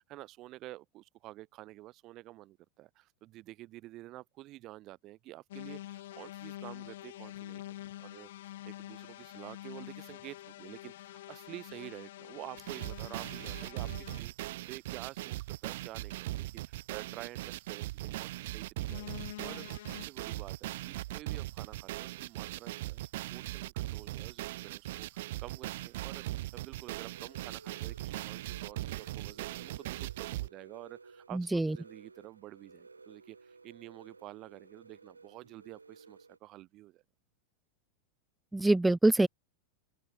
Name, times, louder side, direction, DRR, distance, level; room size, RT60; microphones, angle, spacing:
voice 1, 0.0-7.6 8.0-19.1 19.4-23.0 23.3-26.2 26.5-37.0, right 17 dB, 35° right, 5.8 m, -49 dB
sound 1, 5.5-14.2 18.9-20.1, left 14 dB, 55° left, 3.1 m, -46 dB
sound 2, 12.6-30.5, right 17 dB, 55° right, 1.4 m, -39 dB
sound 3, 27.1-36.4, right 4 dB, 80° right, 3.5 m, -56 dB
voice 2, 31.3-31.8 38.5-39.3, right 2 dB, 5° right, 0.8 m, -25 dB
open air
figure-of-eight pair, 90°, 0 cm